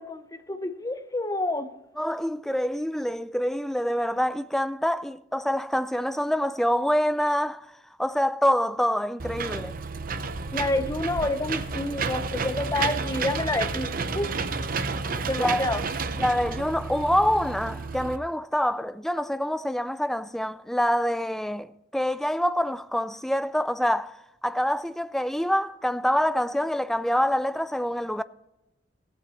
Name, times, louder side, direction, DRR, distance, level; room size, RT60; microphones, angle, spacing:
voice 1, 0.0-1.7 10.5-14.3 15.3-15.8, left 2 dB, 20° left, 0.7 m, -28 dB
voice 2, 2.0-7.7 8.0-9.8 15.4-15.6 16.2-24.2 24.4-28.2, equal, ahead, 0.3 m, -26 dB
Engine / Mechanisms, 9.2-18.2, right 4 dB, 50° right, 0.7 m, -31 dB
15.5 x 8.5 x 4.1 m
head